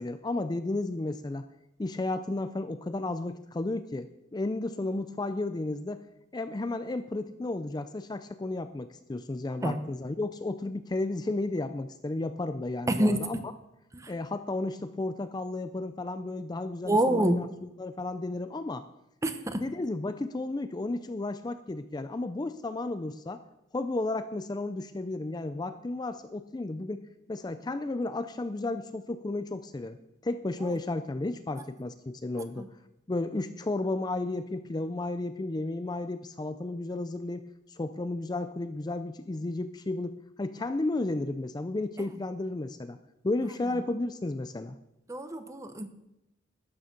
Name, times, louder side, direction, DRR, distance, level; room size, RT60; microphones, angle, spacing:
voice 1, 0.0-1.4 1.8-6.0 6.3-13.4 14.1-18.9 19.5-23.4 23.7-30.0 30.2-32.7 33.1-43.0 43.2-44.8, left 2 dB, 20° left, 10 dB, 0.4 m, -33 dB
voice 2, 12.9-13.2 16.9-17.4 19.2-19.6 45.1-45.9, right 1 dB, 15° right, 9 dB, 0.8 m, -26 dB
13.0 x 8.9 x 5.2 m, 0.87 s
head